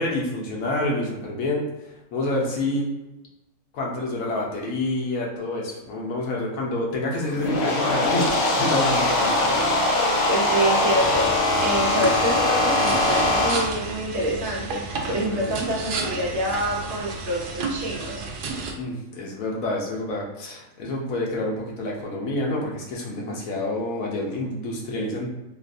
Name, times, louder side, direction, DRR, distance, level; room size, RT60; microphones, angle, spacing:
voice 1, 0.0-1.7 2.1-2.9 3.7-9.4 11.7-11.8 15.1-15.5 18.8-25.3, left 2 dB, 85° left, -2 dB, 1.2 m, -28 dB
sound 1, 7.2-13.7, left 2 dB, 60° left, 0.8 m, -21 dB
voice 2, 10.3-18.3, right 1 dB, 60° right, -2 dB, 1.0 m, -27 dB
sound 2, 11.0-18.7, right 4 dB, 75° right, 0.4 m, -32 dB
3.7 x 2.4 x 2.5 m, 1.0 s
omnidirectional pair, 1.4 m